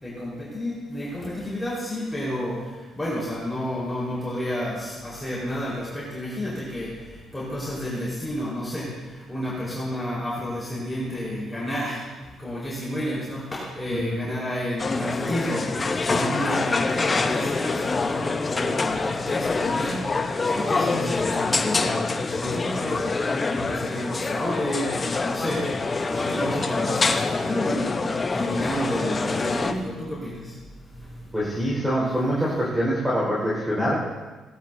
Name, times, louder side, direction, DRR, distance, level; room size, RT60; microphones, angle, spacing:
voice 1, 0.0-2.6 3.0-6.9 7.3-8.9 9.3-12.0 12.4-15.6 16.0-20.0 20.5-23.2 23.5-25.6 26.1-28.0 28.3-30.4, equal, 15° left, -7 dB, 4.5 m, -30 dB
Restaurant Busy, 14.8-29.7, left 3 dB, 30° left, 0.9 m, -26 dB
voice 2, 31.3-34.0, equal, 5° right, -7 dB, 4.8 m, -24 dB
18.5 x 11.5 x 2.7 m, 1.3 s
cardioid pair, 90°, 0 cm